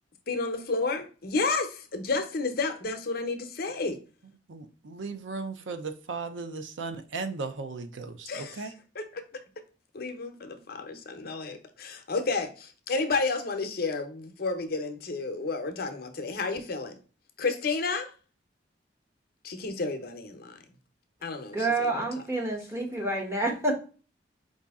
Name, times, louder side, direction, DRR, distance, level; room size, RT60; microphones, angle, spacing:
voice 1, 0.3-1.7 1.9-4.0 8.3-8.7 8.9-9.2 9.9-17.0 17.4-18.1 19.4-20.6 21.2-21.9, left 3 dB, 55° left, 0.7 m, -31 dB
voice 2, 4.5-8.7, right 4 dB, 85° right, 0.6 m, -36 dB
voice 3, 21.5-23.7, right 2 dB, 15° right, 1.1 m, -28 dB
4.9 x 2.7 x 3.5 m
head